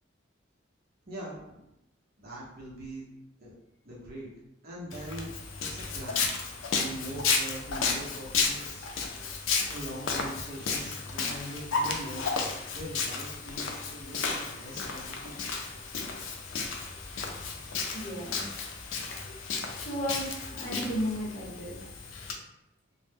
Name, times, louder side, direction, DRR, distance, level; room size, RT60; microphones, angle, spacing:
voice 1, 1.1-1.7 2.2-3.0 3.4-3.5 3.8-4.3 4.6-5.3 5.7-8.9 9.7-15.7, right 1 dB, 50° right, -5 dB, 0.7 m, -42 dB
Walk footsteps, 4.9-22.3, left 4 dB, 80° left, 0.4 m, -33 dB
voice 2, 17.9-18.4 19.8-21.8, equal, 35° left, -7 dB, 0.8 m, -34 dB
2.0 x 2.0 x 3.2 m, 0.88 s
head